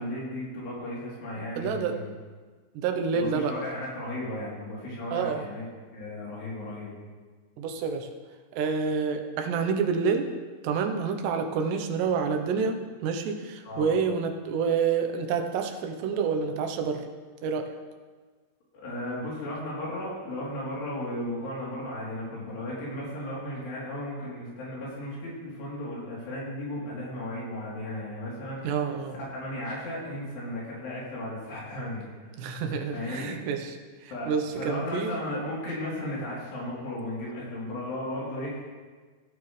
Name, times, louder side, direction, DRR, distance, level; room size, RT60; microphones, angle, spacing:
voice 1, 0.0-2.1 3.1-5.7 5.9-6.9 13.6-13.9 18.8-28.8 29.1-32.1 32.4-32.6 32.9-33.4 34.1-34.3 34.6-38.8, left 1 dB, 80° left, -6 dB, 5.5 m, -35 dB
voice 2, 1.4-2.0 2.7-3.6 5.1-5.5 7.6-8.1 8.5-10.3 10.6-17.1 17.4-17.7 28.6-29.2 32.4-35.2, right 5 dB, 90° right, 5 dB, 3.1 m, -28 dB
16.0 x 10.5 x 3.3 m, 1.4 s
omnidirectional pair, 4.7 m